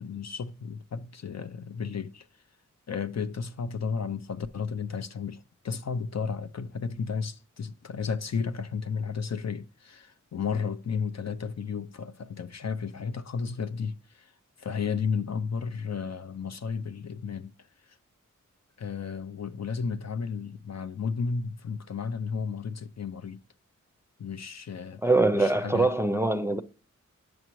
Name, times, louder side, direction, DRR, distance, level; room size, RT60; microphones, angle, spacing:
voice 1, 0.0-2.3 2.9-14.3 14.6-18.0 18.8-23.4 24.2-25.9, left 5 dB, 55° left, 0.5 m, -33 dB
voice 2, 25.0-26.6, right 2 dB, 10° right, 0.5 m, -23 dB
7.8 x 6.0 x 3.0 m
cardioid pair, 45°, 32 cm